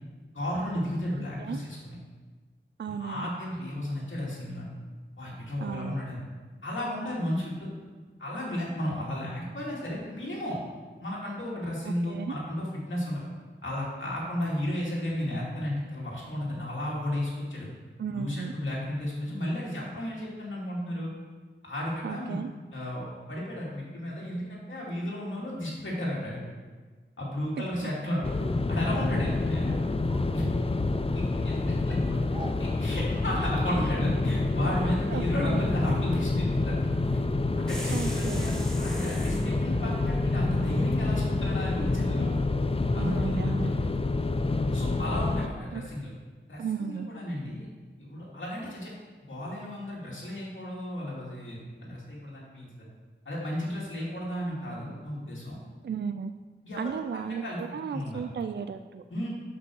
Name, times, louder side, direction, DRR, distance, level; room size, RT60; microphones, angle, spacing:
voice 1, 0.3-2.0 2.9-4.7 5.2-6.2 6.6-7.7 8.2-10.6 11.0-13.2 13.6-17.7 18.0-21.1 21.6-22.4 22.7-26.4 27.2-28.2 28.7-29.8 30.3-30.5 31.1-32.0 32.6-36.9 37.1-37.2 37.6-38.5 38.8-42.3 42.9-43.5 44.7-46.1 46.5-47.7 48.0-48.9 49.3-52.9 53.3-55.6 56.6-57.6 57.9-58.2 59.1-59.3, left 1 dB, 75° left, -6 dB, 2.4 m, -33 dB
voice 2, 1.2-1.6 2.8-3.3 5.6-6.0 11.8-12.3 18.0-18.5 22.0-22.5 27.8-27.9 35.1-35.2 37.9-38.6 42.9-43.7 45.7-45.8 46.6-47.1 55.8-56.3 56.8-59.0, right 6 dB, 60° right, 9 dB, 0.4 m, -35 dB
sound 1, 28.2-45.5, left 2 dB, 30° left, 0.5 m, -27 dB
sound 2, 28.4-34.5, right 1 dB, 25° right, 1.0 m, -45 dB
sound 3, 37.7-39.5, right 1 dB, 5° left, 1.5 m, -40 dB
6.2 x 5.5 x 6.2 m, 1.4 s
wide cardioid pair, 45°, 20 cm